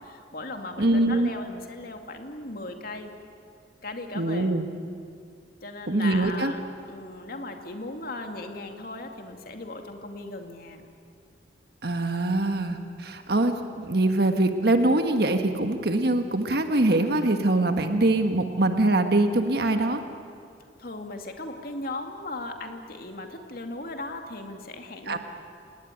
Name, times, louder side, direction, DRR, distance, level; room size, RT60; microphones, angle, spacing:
voice 1, 0.0-3.1 3.8-4.5 5.6-6.6 6.9-10.8 20.8-25.2, left 2 dB, 55° left, 5 dB, 2.4 m, -37 dB
voice 2, 0.8-1.3 4.1-4.7 5.9-6.5 11.8-20.0 25.1-25.2, right 2 dB, 60° right, 6 dB, 1.5 m, -23 dB
27.5 x 19.0 x 9.9 m, 2.4 s
head